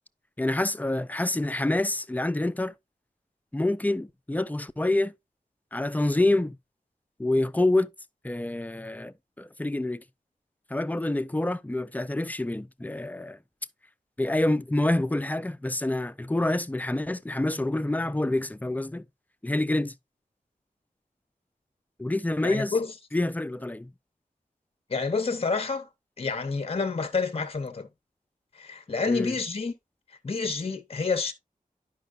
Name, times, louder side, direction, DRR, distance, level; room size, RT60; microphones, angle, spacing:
voice 1, 0.4-2.7 3.5-5.1 5.7-6.6 7.2-7.9 8.2-10.0 10.7-13.4 14.2-19.0 19.4-19.9 22.0-22.8 23.1-23.9 29.1-29.3, left 2 dB, 10° left, 0.3 m, -27 dB
voice 2, 22.4-22.9 24.9-25.9 26.2-27.9 28.5-29.7 30.2-31.3, left 4 dB, 40° left, 0.7 m, -28 dB
10.5 x 5.3 x 2.4 m
wide cardioid pair, 80°, 15 cm